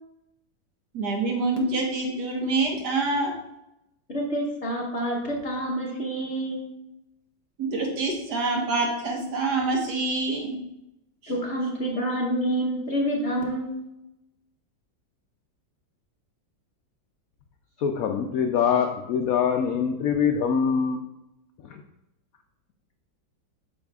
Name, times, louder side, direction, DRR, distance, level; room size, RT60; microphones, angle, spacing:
voice 1, 0.9-3.4 7.6-10.6 11.2-11.4, right 3 dB, 60° right, 0 dB, 1.7 m, -26 dB
voice 2, 4.1-6.6 11.3-13.8, right 1 dB, 45° left, -2 dB, 1.2 m, -28 dB
voice 3, 17.8-21.0 21.6-21.8, left 7 dB, 75° left, 4 dB, 0.8 m, -24 dB
8.6 x 6.4 x 2.3 m, 0.88 s
omnidirectional pair, 2.0 m